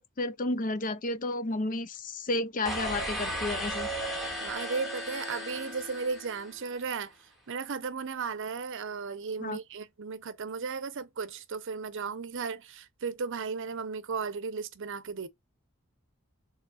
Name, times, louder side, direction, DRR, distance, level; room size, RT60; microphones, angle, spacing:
voice 1, 0.0-3.9 9.4-9.6, left 2 dB, 40° left, 0.6 m, -32 dB
sound 1, 2.6-6.8, equal, ahead, 2.2 m, -35 dB
voice 2, 4.4-7.1 7.5-15.3, right 5 dB, 60° right, 0.7 m, -35 dB
6.5 x 3.1 x 2.3 m
head